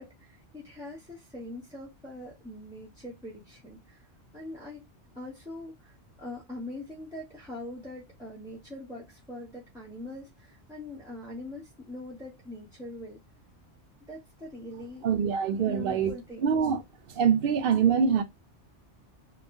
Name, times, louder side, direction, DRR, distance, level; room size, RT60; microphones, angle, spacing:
voice 1, 0.0-3.8 4.3-4.8 5.1-5.9 6.2-13.2 14.1-15.0 15.7-16.5, left 1 dB, 5° right, 0.7 m, -42 dB
voice 2, 15.0-16.1 16.4-16.8 17.1-18.2, right 7 dB, 60° right, 0.7 m, -24 dB
3.0 x 2.2 x 2.5 m
omnidirectional pair, 1.2 m